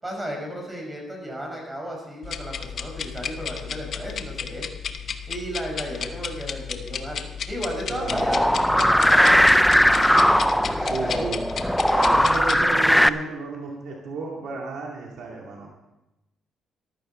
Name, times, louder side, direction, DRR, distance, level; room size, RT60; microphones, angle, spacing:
voice 1, 0.0-4.6 5.3-7.2 7.5-8.4 8.7-11.2 11.8-12.0, equal, 20° right, 0 dB, 5.8 m, -34 dB
sound 1, 2.2-12.6, left 7 dB, 55° left, 0.9 m, -33 dB
voice 2, 7.9-8.3 10.7-11.4 11.9-15.7, right 4 dB, 75° right, -1 dB, 2.4 m, -33 dB
sound 2, 8.1-13.1, equal, ahead, 0.5 m, -19 dB
14.0 x 12.5 x 4.4 m, 0.98 s
cardioid pair, 90°, 0 cm